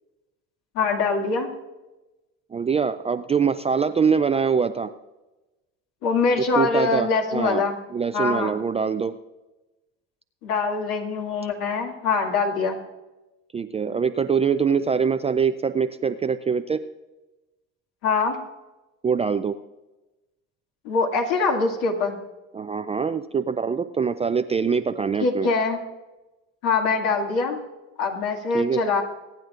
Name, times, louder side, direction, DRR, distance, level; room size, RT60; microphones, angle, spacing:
voice 1, 0.7-1.5 6.0-7.8 8.1-8.5 10.4-12.8 18.0-18.4 20.8-22.2 25.2-25.8 26.6-27.6 28.0-29.0, left 4 dB, 70° left, 2 dB, 2.3 m, -23 dB
voice 2, 2.5-4.9 6.4-9.1 13.5-16.8 19.0-19.6 22.5-25.5 28.5-28.8, right 6 dB, 15° right, 10 dB, 0.3 m, -24 dB
24.0 x 9.2 x 2.5 m, 1.1 s
hypercardioid pair, 80°, 40 cm